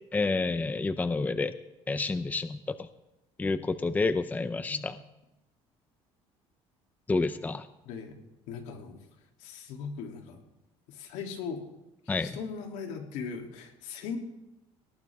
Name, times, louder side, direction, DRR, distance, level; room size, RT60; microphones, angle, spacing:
voice 1, 0.1-1.5 1.9-2.9 3.4-5.0 7.1-7.7 12.1-12.4, left 3 dB, 15° left, 12 dB, 0.6 m, -29 dB
voice 2, 4.5-4.8 7.8-8.2 8.5-9.0 9.4-10.4 10.9-11.6 12.2-14.2, left 6 dB, 80° left, 2 dB, 3.0 m, -39 dB
19.0 x 19.0 x 3.6 m, 0.93 s
cardioid pair, 120°, 12 cm